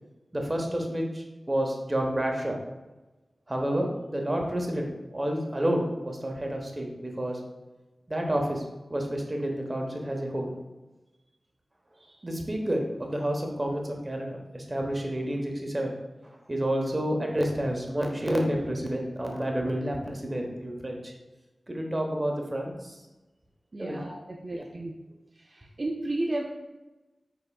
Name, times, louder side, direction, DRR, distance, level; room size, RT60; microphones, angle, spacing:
voice 1, 0.3-2.6 3.5-7.4 8.1-8.6 8.9-10.5 12.2-15.9 16.2-21.1 21.7-23.0 23.8-24.0 24.5-24.6, right 1 dB, 30° right, 1 dB, 1.0 m, -29 dB
voice 2, 23.7-24.9 25.5-26.5, right 2 dB, 50° right, 0 dB, 0.5 m, -33 dB
5.6 x 3.9 x 2.3 m, 1.1 s
cardioid pair, 45°, 0 cm